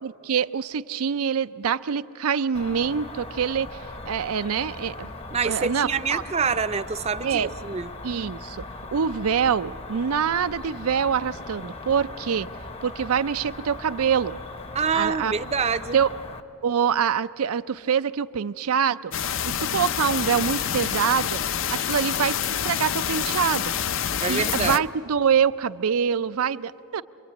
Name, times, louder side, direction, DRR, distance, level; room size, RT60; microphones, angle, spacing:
voice 1, 0.0-3.8 4.1-5.1 5.4-6.2 7.2-7.5 8.0-12.5 12.8-14.3 14.9-15.3 15.9-16.1 16.6-19.1 19.4-21.4 21.7-22.4 22.6-23.7 24.3-27.0, right 7 dB, 85° right, 14 dB, 0.5 m, -25 dB
Cricket, 2.5-16.4, left 2 dB, 30° left, 0.7 m, -39 dB
voice 2, 5.3-7.9 14.7-16.0 24.2-24.8, right 5 dB, 30° right, 12 dB, 0.5 m, -26 dB
sound 1, 19.1-24.8, left 8 dB, 60° left, 0.5 m, -27 dB
27.5 x 22.5 x 8.4 m, 3.0 s
head